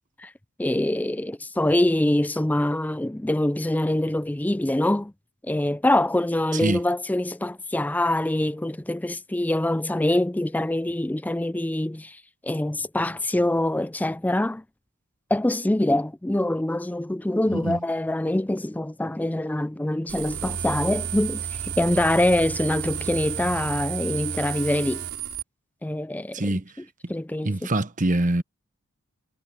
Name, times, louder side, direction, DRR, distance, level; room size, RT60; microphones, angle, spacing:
voice 1, 0.6-5.1 5.4-14.6 15.3-25.0 25.8-26.5 27.1-27.5, left 1 dB, 5° left, 0.4 m, -24 dB
sound 1, 20.1-25.4, right 7 dB, 80° right, 3.7 m, -31 dB
voice 2, 26.3-26.7 27.0-27.1 27.4-28.4, right 1 dB, 35° right, 1.2 m, -24 dB
head